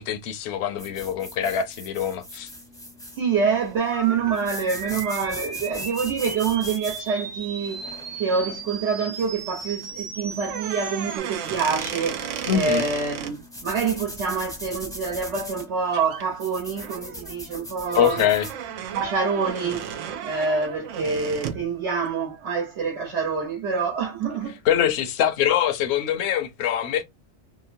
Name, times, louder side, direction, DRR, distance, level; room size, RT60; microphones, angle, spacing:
voice 1, 0.0-2.5 12.5-12.8 17.9-18.5 24.7-27.0, left 10 dB, 70° left, 0.8 m, -23 dB
sound 1, 0.8-18.6, left 1 dB, 5° left, 0.5 m, -41 dB
voice 2, 3.2-7.8 8.2-13.4 13.6-18.3 18.9-24.6, right 5 dB, 70° right, 1.2 m, -26 dB
sound 2, 3.8-11.2, right 4 dB, 55° right, 0.3 m, -36 dB
sound 3, 10.4-13.3 15.5-15.6 15.9-16.3 16.8-21.7, right 8 dB, 85° right, 0.9 m, -34 dB
2.9 x 2.0 x 2.5 m
omnidirectional pair, 1.2 m